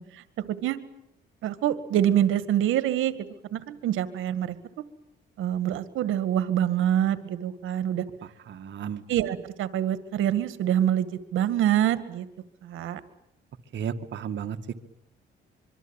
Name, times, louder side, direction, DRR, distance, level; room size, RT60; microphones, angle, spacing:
voice 1, 0.1-0.8 1.4-3.1 3.5-4.6 5.4-8.1 9.1-12.3 12.6-13.0, right 11 dB, 85° right, 13 dB, 2.0 m, -25 dB
voice 2, 8.5-9.0 13.7-14.6, right 8 dB, 65° right, 7 dB, 2.2 m, -33 dB
25.0 x 24.0 x 9.0 m, 0.81 s
cardioid pair, 90°, 20 cm